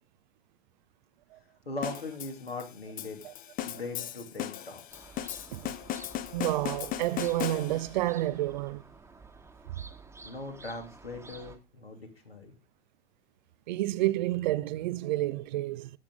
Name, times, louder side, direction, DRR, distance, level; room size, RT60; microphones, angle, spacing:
voice 1, 1.7-3.2 3.6-5.1 10.2-12.5, left 2 dB, 85° left, 2.5 m, -40 dB
sound 1, 1.8-8.0, left 12 dB, 30° left, 0.8 m, -37 dB
sound 2, 4.9-11.6, right 4 dB, 10° right, 1.3 m, -51 dB
voice 2, 6.3-8.8 13.7-15.9, right 16 dB, 50° right, 0.6 m, -29 dB
15.5 x 6.0 x 3.7 m
figure-of-eight pair, 90°, 29 cm